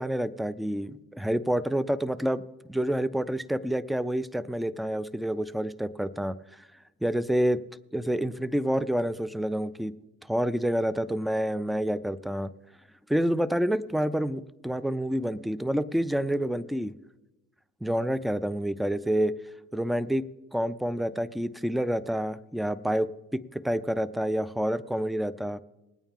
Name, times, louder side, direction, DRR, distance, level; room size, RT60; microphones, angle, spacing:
voice 1, 0.0-2.4 2.7-6.6 7.0-7.6 7.9-9.9 10.3-12.5 13.1-16.9 17.8-19.3 19.7-20.2 20.5-25.6, equal, ahead, 17 dB, 0.3 m, -28 dB
20.5 x 9.0 x 3.6 m, 1.0 s
cardioid pair, 85°, 33 cm